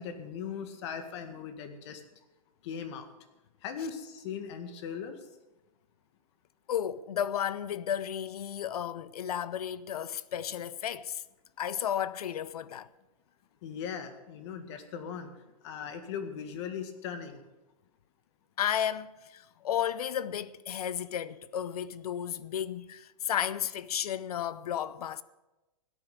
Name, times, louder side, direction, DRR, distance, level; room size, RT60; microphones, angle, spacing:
voice 1, 0.0-2.0 2.6-3.1 3.6-5.2 13.6-15.3 15.6-17.4, left 7 dB, 50° left, 1.9 m, -39 dB
voice 2, 6.7-11.2 11.6-12.9 18.6-25.2, left 9 dB, 90° left, 0.7 m, -33 dB
16.0 x 8.9 x 6.7 m
hypercardioid pair, 155°, 19 cm